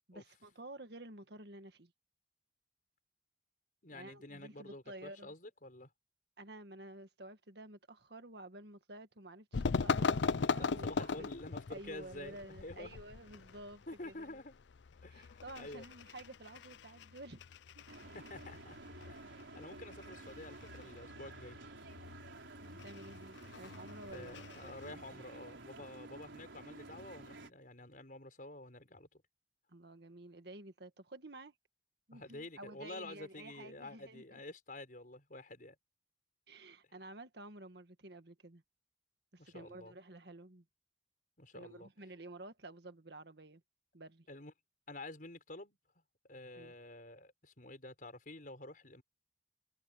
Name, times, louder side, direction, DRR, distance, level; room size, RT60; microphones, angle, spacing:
voice 1, 0.1-1.9 3.9-5.3 6.4-11.3 11.7-14.4 15.1-17.9 22.6-25.0 29.7-31.5 32.1-34.4 36.5-38.6 39.3-40.6 41.5-43.6 43.9-44.3 46.6-46.7, right 1 dB, 60° right, 1.8 m, -51 dB
voice 2, 3.8-5.9 10.3-13.0 13.9-14.5 15.0-15.9 18.1-18.8 19.1-21.6 24.0-29.2 32.1-35.8 39.4-39.9 41.4-41.9 44.3-44.5 44.9-45.8 46.3-49.0, left 2 dB, 45° left, 5.2 m, -49 dB
sound 1, 9.5-24.9, left 5 dB, 70° left, 0.5 m, -40 dB
sound 2, 17.9-27.5, right 2 dB, 80° right, 4.5 m, -52 dB
head